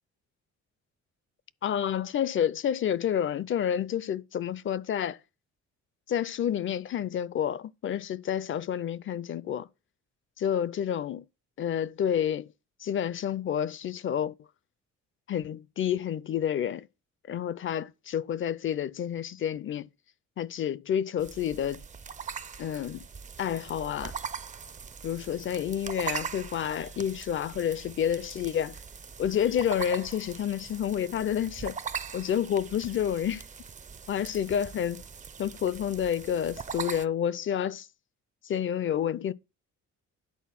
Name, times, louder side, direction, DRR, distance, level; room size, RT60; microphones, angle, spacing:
voice 1, 1.6-5.2 6.1-9.7 10.4-11.2 11.6-12.5 12.8-14.3 15.3-16.9 17.3-19.9 20.4-21.8 22.6-23.0 23.4-24.1 25.0-28.8 29.2-31.8 32.1-33.5 34.1-35.0 35.4-37.9 38.4-39.3, left 9 dB, 40° left, 0.5 m, -29 dB
sound 1, 21.2-37.1, right 6 dB, 25° right, 0.4 m, -41 dB
10.5 x 4.0 x 5.8 m
cardioid pair, 90°, 30 cm